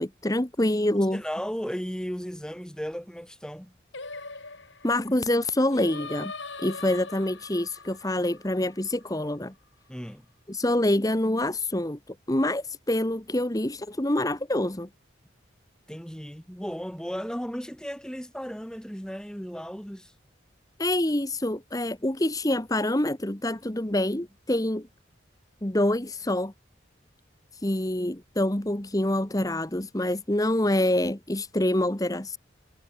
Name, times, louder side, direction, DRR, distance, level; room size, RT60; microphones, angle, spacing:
voice 1, 0.0-1.2 4.8-6.3 6.6-9.5 10.5-14.9 20.8-24.9 25.6-26.5 27.5-32.4, left 1 dB, 20° left, 1.4 m, -26 dB
voice 2, 1.1-3.7 9.9-10.3 15.9-20.1, equal, 5° left, 1.9 m, -35 dB
Singing, 3.9-9.2, left 3 dB, 80° left, 7.8 m, -41 dB
head